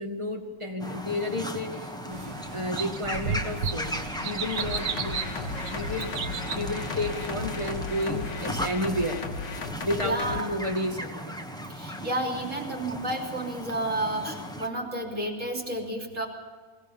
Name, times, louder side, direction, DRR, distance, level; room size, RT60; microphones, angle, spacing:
voice 1, 0.0-5.2 5.7-9.2 9.8-11.3, left 1 dB, 15° right, 2 dB, 2.2 m, -32 dB
sound 1, 0.8-14.7, equal, 5° left, 1.3 m, -37 dB
sound 2, 2.1-8.3, right 6 dB, 80° right, 1.8 m, -35 dB
sound 3, 4.6-10.4, left 4 dB, 80° left, 2.1 m, -35 dB
voice 2, 10.0-10.5 11.7-16.3, right 1 dB, 45° right, 0 dB, 3.5 m, -31 dB
22.5 x 17.0 x 7.1 m, 1.5 s
omnidirectional pair, 1.9 m